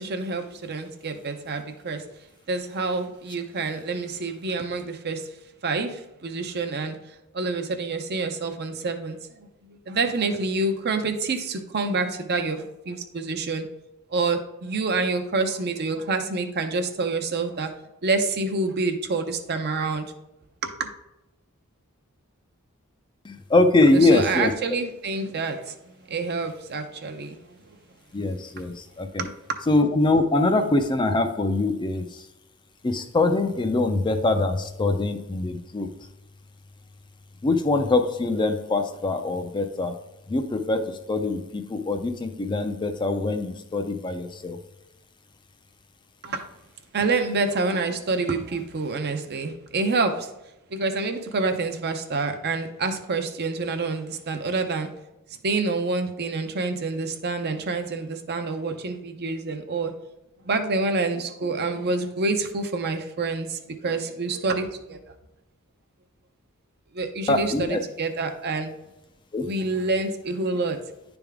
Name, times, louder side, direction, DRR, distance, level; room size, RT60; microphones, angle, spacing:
voice 1, 0.0-2.0 2.5-5.3 5.6-7.0 7.3-13.7 14.1-17.7 18.0-20.1 20.6-20.9 23.9-27.6 29.2-29.6 46.2-46.4 46.9-50.3 50.7-54.9 55.4-59.9 60.4-65.1 66.9-68.7 69.4-70.8, right 3 dB, 50° right, 7 dB, 0.6 m, -27 dB
voice 2, 23.2-24.5 28.1-29.3 29.7-32.3 32.8-35.9 37.4-40.0 40.3-44.6 67.3-67.8 69.3-69.5, left 2 dB, 20° left, 6 dB, 0.4 m, -23 dB
10.0 x 3.5 x 3.5 m, 0.93 s
head